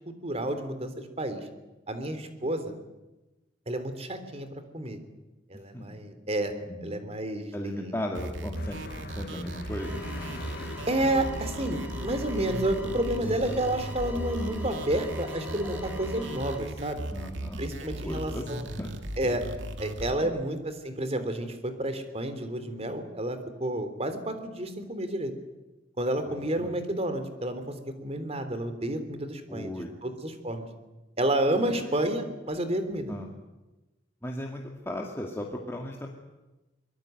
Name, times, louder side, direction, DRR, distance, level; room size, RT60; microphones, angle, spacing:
voice 1, 0.2-1.5 1.9-2.7 3.7-4.5 4.7-5.0 5.5-6.5 6.8-7.9 10.9-17.0 17.6-18.6 19.2-25.3 26.0-29.7 30.0-30.7 31.2-33.1, right 1 dB, 35° right, 9 dB, 3.4 m, -30 dB
voice 2, 7.5-8.8 9.2-10.0 17.1-17.6 18.0-18.9 20.2-20.3 26.3-26.7 29.5-29.9 31.6-32.1 33.1-33.3 34.2-36.1, left 1 dB, 15° left, 0 dB, 2.2 m, -36 dB
sound 1, 8.1-20.1, right 1 dB, 75° right, 2.5 m, -37 dB
sound 2, 8.5-13.6, left 2 dB, 55° left, 2.1 m, -43 dB
sound 3, 9.8-16.6, left 2 dB, 10° right, 5.1 m, -40 dB
24.0 x 22.5 x 9.3 m, 1.0 s
head